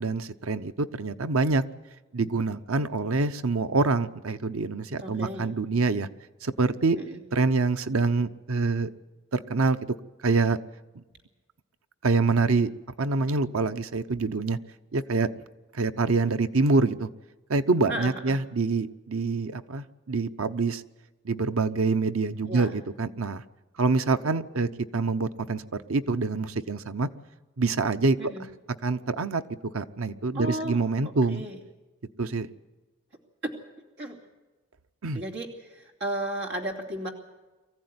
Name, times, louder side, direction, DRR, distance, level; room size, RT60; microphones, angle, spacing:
voice 1, 0.0-1.6 2.1-6.1 6.4-7.0 7.3-8.9 9.3-9.8 10.2-10.6 10.9-11.0 12.0-12.7 13.0-14.6 14.9-15.3 15.7-17.1 17.5-20.8 21.2-23.4 23.8-27.1 27.6-28.2 28.8-29.4 29.7-31.4 32.2-32.5 35.0-35.2, right 3 dB, 90° right, 10 dB, 0.9 m, -26 dB
voice 2, 5.0-5.5 6.9-7.2 17.9-18.4 22.5-22.7 28.2-28.4 30.3-31.6 34.0-34.2 35.1-37.1, right 1 dB, 55° right, 1 dB, 2.9 m, -34 dB
23.5 x 15.0 x 9.6 m, 1.2 s
head